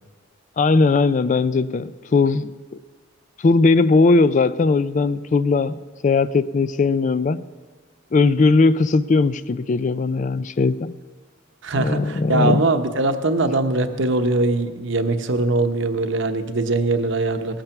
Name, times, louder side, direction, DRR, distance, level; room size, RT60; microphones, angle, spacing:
voice 1, 0.6-2.5 3.4-7.4 8.1-10.9 11.8-12.7, left 3 dB, 35° left, 15 dB, 0.3 m, -18 dB
voice 2, 11.6-17.6, right 2 dB, 55° right, 8 dB, 0.9 m, -21 dB
18.5 x 8.9 x 5.9 m, 1.5 s
head